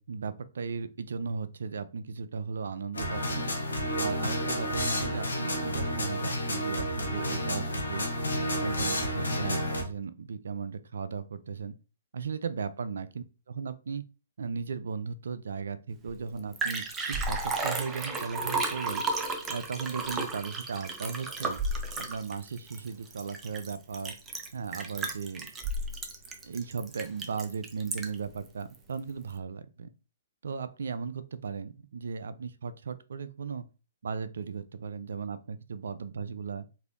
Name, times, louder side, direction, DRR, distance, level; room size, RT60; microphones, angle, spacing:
voice 1, 0.0-8.1 8.5-11.8 12.1-14.0 14.4-19.0 19.5-21.6 22.0-24.1 24.5-25.5 26.4-29.9 30.4-33.7 34.0-36.7, right 5 dB, 75° right, 13 dB, 0.4 m, -36 dB
sound 1, 2.9-9.8, equal, 85° left, 0.9 m, -30 dB
Liquid, 16.1-16.2 16.4-28.3 28.7-28.8, right 3 dB, 15° right, 0.5 m, -33 dB
3.3 x 2.6 x 2.5 m, 0.33 s
hypercardioid pair, 130°, 0 cm